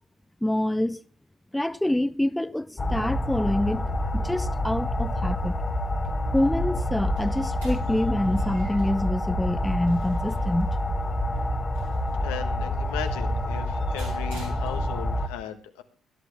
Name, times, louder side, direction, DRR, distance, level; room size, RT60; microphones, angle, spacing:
voice 1, 0.4-1.0 1.5-3.8 4.1-5.6 6.3-10.8, left 1 dB, 5° left, 0.6 m, -26 dB
sound 1, 2.8-15.3, left 1 dB, 30° left, 1.5 m, -27 dB
sound 2, 7.0-15.2, right 2 dB, 90° right, 6.6 m, -50 dB
voice 2, 12.2-15.8, left 9 dB, 80° left, 1.3 m, -37 dB
18.0 x 11.5 x 3.3 m
hypercardioid pair, 50°, 0 cm